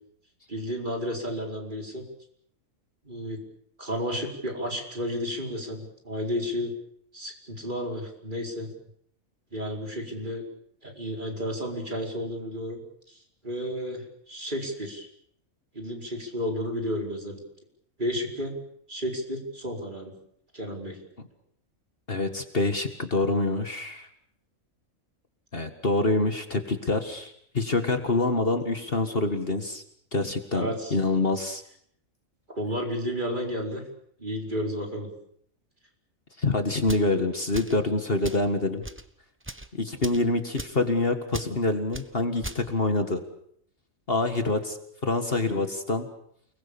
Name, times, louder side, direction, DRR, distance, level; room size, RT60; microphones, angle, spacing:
voice 1, 0.5-2.0 3.0-3.4 3.8-6.7 7.1-8.7 9.5-10.4 10.8-12.8 13.1-13.2 13.4-15.1 15.7-17.4 18.0-18.5 18.9-20.1 20.5-21.0 30.5-31.0 32.5-33.8 34.2-35.1, equal, 35° right, 1 dB, 5.0 m, -32 dB
voice 2, 22.1-24.1 25.5-29.8 30.1-31.6 36.4-38.8 39.7-43.2 44.1-44.8 45.0-46.1, left 2 dB, 45° left, 7 dB, 2.0 m, -26 dB
sound 1, 36.8-37.1 37.5-37.8 38.2-38.5 38.8-39.0 39.4-39.7 40.0-40.2 40.6-40.8 41.3-41.5 41.9-42.1 42.4-42.6, right 1 dB, 10° right, 1.1 m, -37 dB
29.5 x 20.5 x 7.1 m, 0.68 s
omnidirectional pair, 1.4 m